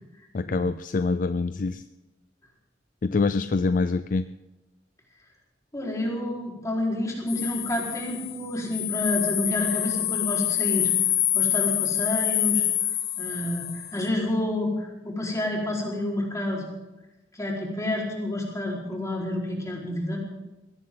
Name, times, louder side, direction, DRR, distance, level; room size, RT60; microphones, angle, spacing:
voice 1, 0.3-1.8 3.0-4.3, left 3 dB, 45° left, 12 dB, 0.4 m, -25 dB
voice 2, 5.7-10.9 11.3-12.6 13.2-16.7 17.3-20.2, left 1 dB, 20° left, -2 dB, 4.5 m, -29 dB
sound 1, 7.3-14.1, left 12 dB, 60° left, 1.4 m, -26 dB
21.5 x 17.5 x 3.9 m, 1.0 s
head